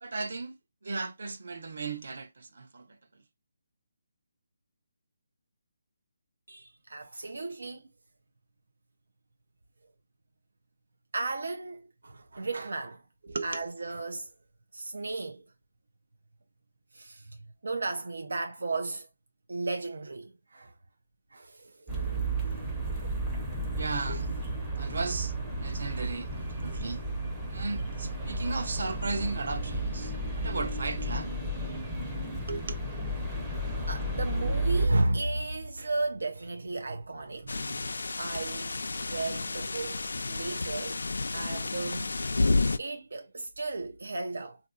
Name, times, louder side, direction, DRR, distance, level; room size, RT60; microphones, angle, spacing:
voice 1, 0.0-0.6 0.8-2.9 13.2-13.7 23.8-24.3 24.8-25.3 25.6-27.0 27.5-31.3 32.5-32.7, right 3 dB, 55° right, 0.8 m, -35 dB
voice 2, 6.5-7.9 11.1-13.0 13.4-14.3 14.7-15.4 16.9-17.4 17.6-19.1 19.5-20.7 21.3-22.3 23.0-23.1 33.9-37.8 38.2-41.0 41.3-42.5 42.8-44.6, right 2 dB, 85° right, 0.5 m, -34 dB
sound 1, 21.9-34.9, right 1 dB, 10° right, 0.5 m, -33 dB
sound 2, 37.5-42.8, left 3 dB, 80° left, 0.4 m, -31 dB
3.7 x 2.6 x 2.3 m
hypercardioid pair, 175°, 0 cm